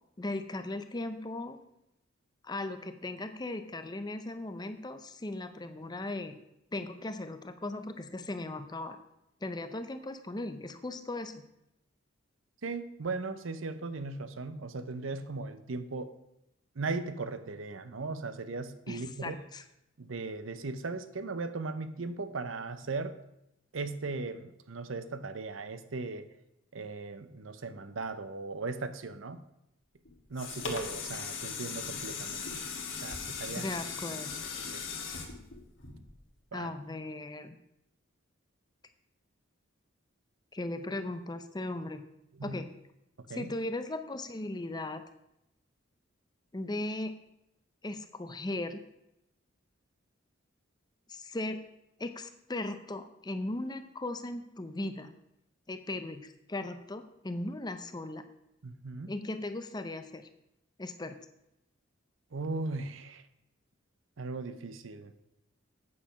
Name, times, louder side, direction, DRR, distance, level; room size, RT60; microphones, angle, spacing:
voice 1, 0.2-1.6 2.4-6.4 6.7-9.0 9.4-11.4 18.9-19.6 33.6-34.3 36.5-37.5 40.5-42.0 42.4-42.7 43.3-45.0 46.5-47.1 47.8-48.8 51.1-51.6 52.0-55.1 55.7-58.2 59.1-60.3 60.8-61.2, left 2 dB, 20° left, 9 dB, 0.6 m, -37 dB
voice 2, 12.6-16.1 16.8-19.4 20.0-23.2 23.7-26.3 26.7-29.4 30.3-32.6 33.0-33.7 34.6-34.8 36.5-36.7 42.3-42.6 43.3-43.5 58.6-59.1 62.3-63.2 64.2-65.1, right 3 dB, 80° right, 11 dB, 0.7 m, -38 dB
sound 1, 30.1-36.4 36.9-37.0, left 5 dB, 70° left, 1.7 m, -38 dB
8.6 x 6.6 x 5.7 m, 0.85 s
head